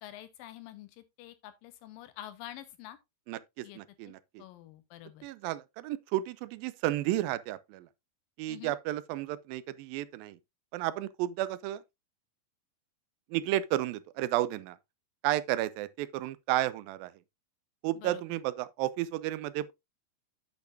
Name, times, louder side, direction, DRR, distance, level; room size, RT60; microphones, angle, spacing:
voice 1, 0.0-3.0 3.6-3.8 4.0-4.1 4.4-5.3 8.5-8.8 18.0-18.2, left 13 dB, 85° left, 2.7 m, -47 dB
voice 2, 3.3-4.4 5.2-7.9 8.4-10.4 10.7-11.8 13.3-14.8 15.2-17.1 17.8-19.7, right 14 dB, 90° right, 2.4 m, -32 dB
8.5 x 8.1 x 2.6 m
omnidirectional pair, 4.0 m